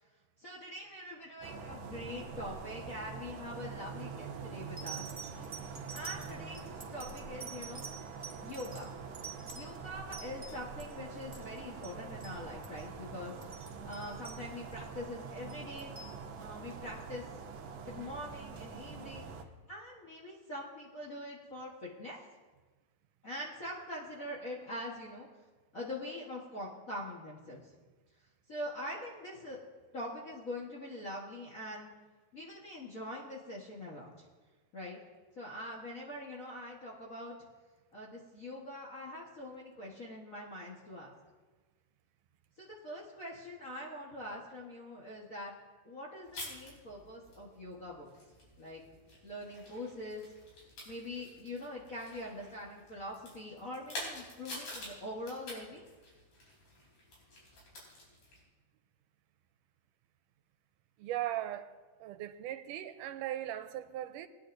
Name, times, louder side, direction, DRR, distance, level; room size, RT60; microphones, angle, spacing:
voice 1, 0.4-5.0 5.9-6.6 6.9-7.9 8.4-8.9 9.4-13.3 13.8-16.0 16.4-17.2 17.8-19.4 19.7-22.2 23.2-25.3 25.7-27.7 28.5-29.6 29.9-31.9 32.3-34.3 34.7-35.0 35.3-37.3 37.9-41.1 42.6-45.5 45.8-48.1 48.6-48.8 49.2-50.2 50.8-55.8, left 1 dB, 70° left, 0.7 m, -43 dB
sound 1, 1.4-19.4, right 5 dB, 70° right, 1.6 m, -45 dB
sound 2, 4.2-4.3 4.8-10.9 11.2-11.6 11.8-11.9 12.2-12.4 12.6-12.8 13.2-14.9 15.5-16.1 17.0-17.1, right 6 dB, 40° right, 0.6 m, -47 dB
sound 3, 46.2-58.4, left 1 dB, 85° left, 5.2 m, -49 dB
voice 2, 61.0-61.7 62.0-64.3, right 13 dB, 85° right, 2.1 m, -38 dB
20.5 x 10.0 x 2.6 m
omnidirectional pair, 3.7 m